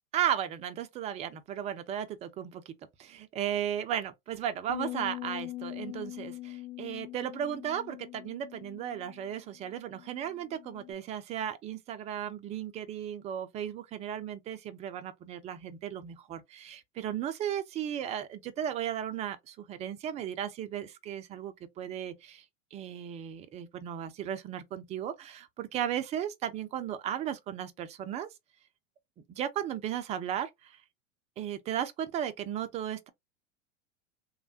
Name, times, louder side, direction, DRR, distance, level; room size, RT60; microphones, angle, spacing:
voice 1, 0.1-2.7 3.0-22.4 22.7-28.3 29.3-30.8 31.4-33.1, right 10 dB, 20° right, 0.3 m, -35 dB
sound 1, 4.7-10.9, left 17 dB, 45° left, 0.9 m, -42 dB
3.1 x 2.1 x 2.6 m
hypercardioid pair, 100°, 39 cm